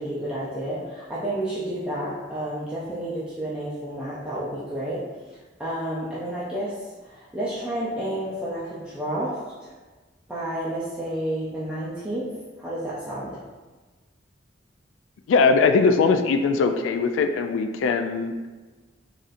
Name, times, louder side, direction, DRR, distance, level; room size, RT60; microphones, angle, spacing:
voice 1, 0.0-5.0 5.6-6.8 7.0-9.4 9.6-9.7 10.3-12.3 12.6-13.4, right 1 dB, 5° right, -10 dB, 0.5 m, -30 dB
voice 2, 15.3-18.3, left 4 dB, 85° left, 7 dB, 0.3 m, -20 dB
4.1 x 2.5 x 2.5 m, 1.3 s
head